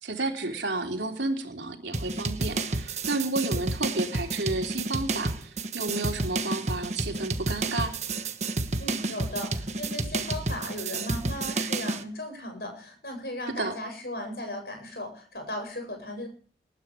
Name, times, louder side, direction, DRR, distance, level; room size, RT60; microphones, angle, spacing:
voice 1, 0.0-7.9 13.6-13.7, right 2 dB, 80° right, 4 dB, 3.3 m, -31 dB
sound 1, 1.9-12.0, right 3 dB, 40° right, 1.4 m, -30 dB
voice 2, 8.8-16.3, left 1 dB, 60° left, 5 dB, 8.0 m, -36 dB
19.5 x 10.0 x 5.1 m, 0.43 s
head